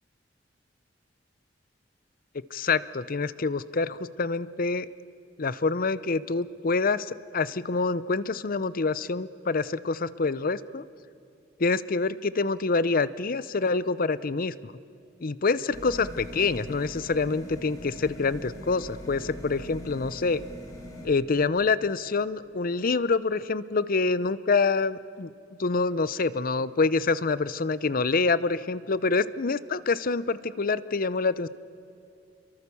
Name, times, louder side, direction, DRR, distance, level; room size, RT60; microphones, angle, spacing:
voice 1, 2.5-4.9 5.4-10.8 11.6-14.7 15.2-20.4 21.0-25.3 25.6-31.5, left 4 dB, 50° left, 16 dB, 0.7 m, -26 dB
sound 1, 15.7-21.1, equal, 20° left, 4.6 m, -42 dB
27.5 x 23.0 x 7.0 m, 2.6 s
head